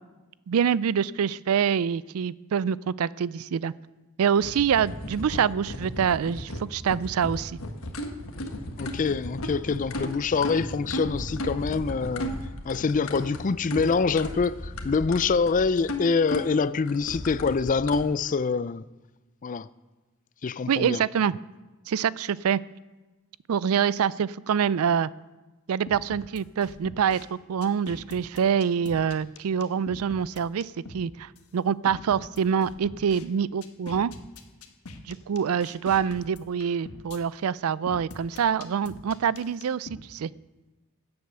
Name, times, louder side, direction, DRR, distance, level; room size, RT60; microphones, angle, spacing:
voice 1, 0.5-3.7 4.2-7.6 20.7-21.3 21.9-22.6 23.5-25.1 25.7-34.1 35.1-40.3, right 7 dB, 80° right, 0.4 m, -25 dB
sound 1, 4.4-18.0, left 1 dB, 70° left, 1.5 m, -35 dB
voice 2, 8.8-12.3 12.6-18.9 19.4-19.7 20.4-21.0, left 4 dB, 35° left, 0.4 m, -25 dB
sound 2, 25.9-27.2 27.6-31.0 31.4-31.5 31.9-33.2 33.6-37.2 37.9-40.0, left 2 dB, 85° left, 1.4 m, -43 dB
16.5 x 8.0 x 6.7 m
head